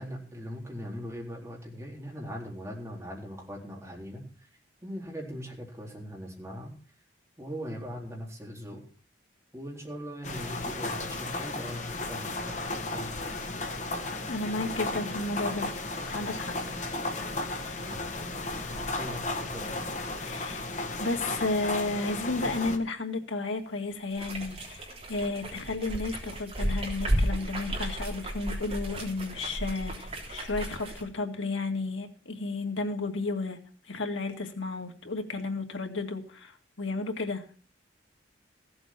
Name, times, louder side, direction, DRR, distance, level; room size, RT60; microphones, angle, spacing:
voice 1, 0.0-4.5 4.8-6.7 7.4-8.8 9.5-13.1 17.8-18.2 18.9-19.7, equal, 15° right, -2 dB, 4.0 m, -40 dB
sound 1, 10.2-22.8, left 2 dB, 40° left, 1.8 m, -34 dB
voice 2, 14.3-15.7 16.1-16.6 17.5-17.8 20.2-20.7 21.0-33.6 33.9-37.7, left 3 dB, 85° left, 4 dB, 2.2 m, -33 dB
sound 2, 24.1-31.0, right 1 dB, 30° right, 3.4 m, -33 dB
15.5 x 7.9 x 6.1 m, 0.41 s
head